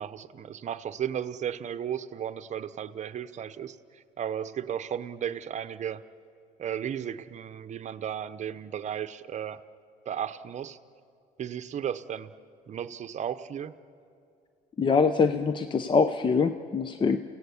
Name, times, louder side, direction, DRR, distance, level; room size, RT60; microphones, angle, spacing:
voice 1, 0.0-6.0 6.6-9.6 10.1-10.8 11.4-12.3 12.7-13.7, right 9 dB, 45° right, 12 dB, 0.8 m, -34 dB
voice 2, 14.8-17.2, left 5 dB, 30° left, 10 dB, 0.7 m, -24 dB
30.0 x 17.0 x 7.1 m, 2.5 s
cardioid pair, 110°, 17 cm